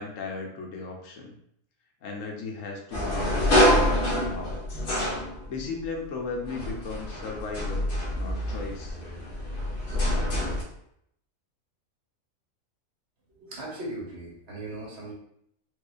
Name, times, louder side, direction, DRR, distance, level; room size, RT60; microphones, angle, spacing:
voice 1, 0.0-1.4 2.0-4.6 5.5-7.9 8.1-9.0, left 4 dB, 70° left, 1 dB, 1.0 m, -36 dB
sound 1, 2.9-5.8 6.4-10.6, equal, 45° left, 1.0 m, -26 dB
voice 2, 13.3-15.1, right 2 dB, 55° right, -3 dB, 1.2 m, -38 dB
4.5 x 2.3 x 2.4 m, 0.72 s
omnidirectional pair, 1.4 m